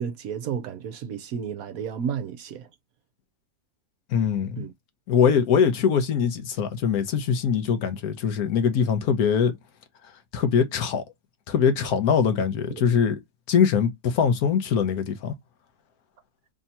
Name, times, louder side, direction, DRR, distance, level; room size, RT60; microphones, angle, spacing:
voice 1, 0.0-2.7 4.6-4.7 5.2-5.4 12.7-12.8, right 7 dB, 65° right, 1.0 m, -32 dB
voice 2, 4.1-4.7 5.1-9.5 10.3-11.0 11.5-13.2 13.5-15.3, left 7 dB, 70° left, 1.2 m, -22 dB
3.5 x 2.7 x 4.1 m
omnidirectional pair, 1.7 m